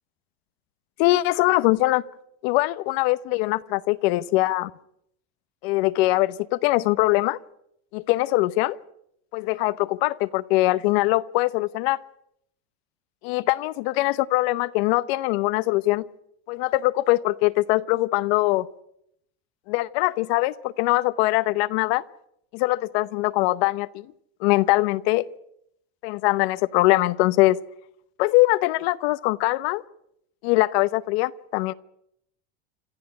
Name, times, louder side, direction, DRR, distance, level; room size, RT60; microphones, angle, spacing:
voice 1, 1.0-2.0 2.4-4.7 5.6-7.4 7.9-8.8 9.3-12.0 13.2-16.0 16.5-18.7 19.7-22.0 22.5-24.0 24.4-25.2 26.0-27.6 28.2-29.8 30.4-31.7, left 19 dB, 70° left, 0.9 m, -22 dB
27.0 x 13.5 x 9.6 m
supercardioid pair, 120°, 32 cm